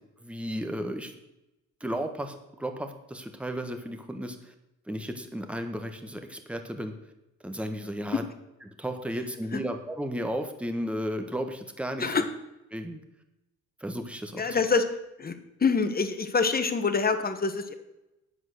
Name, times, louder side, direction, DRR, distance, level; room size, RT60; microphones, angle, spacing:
voice 1, 0.2-1.1 1.8-4.5 4.9-6.9 7.4-8.2 8.7-12.1 12.7-13.0 13.8-14.5, equal, 5° right, 6 dB, 1.3 m, -34 dB
voice 2, 14.3-14.9 15.2-17.7, left 4 dB, 30° left, 9 dB, 1.3 m, -26 dB
9.1 x 7.9 x 6.5 m, 0.93 s
cardioid pair, 90°, 30 cm